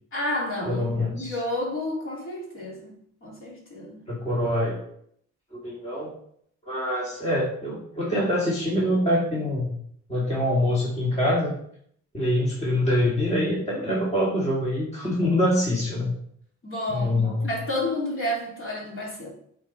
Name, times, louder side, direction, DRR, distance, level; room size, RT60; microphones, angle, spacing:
voice 1, 0.1-2.9 3.2-4.0 16.6-19.3, left 1 dB, 45° left, -3 dB, 2.8 m, -30 dB
voice 2, 0.6-1.4 4.1-4.9 5.5-6.1 6.7-9.7 10.1-11.5 12.1-16.1 16.9-17.5, left 1 dB, 20° left, -5 dB, 2.0 m, -25 dB
7.9 x 4.1 x 4.0 m, 0.67 s
cardioid pair, 90°, 30 cm